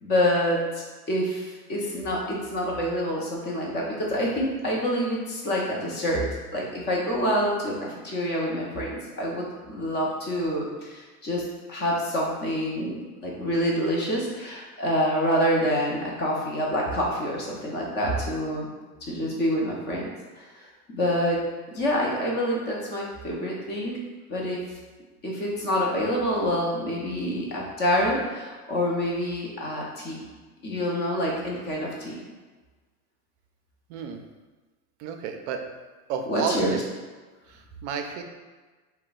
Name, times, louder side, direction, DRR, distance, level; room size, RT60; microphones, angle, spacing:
voice 1, 0.0-6.2 6.5-18.7 19.1-20.0 20.4-21.4 21.7-24.0 24.3-24.6 25.2-30.2 30.6-32.2 36.3-36.7, equal, 25° left, -3 dB, 0.5 m, -27 dB
voice 2, 35.0-35.6 36.1-36.8 37.5-38.2, right 6 dB, 55° right, 5 dB, 0.5 m, -31 dB
2.3 x 2.2 x 3.9 m, 1.3 s
hypercardioid pair, 115°, 45 cm